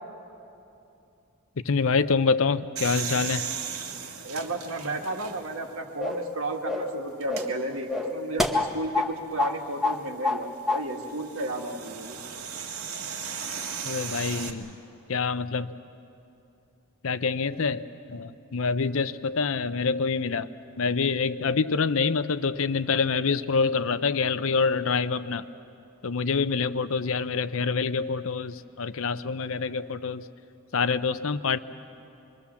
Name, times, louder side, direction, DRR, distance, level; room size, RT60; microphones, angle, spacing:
voice 1, 1.6-3.5 13.8-14.8 15.1-15.7 17.0-20.5 20.8-25.5 26.0-30.3 30.7-31.6, left 5 dB, 65° left, 14 dB, 0.6 m, -26 dB
sound 1, 2.8-5.7 6.2-6.3 7.2-7.5 9.6-14.5, right 6 dB, 85° right, 1.7 m, -36 dB
voice 2, 4.2-12.2, right 2 dB, 70° right, 3 dB, 1.9 m, -33 dB
sound 2, 6.0-6.3 6.6-7.0 7.3-7.6 7.9-9.1 9.4-9.6 9.8-10.4 10.7-10.8, left 2 dB, ahead, 0.9 m, -27 dB
25.5 x 22.5 x 7.1 m, 2.7 s
head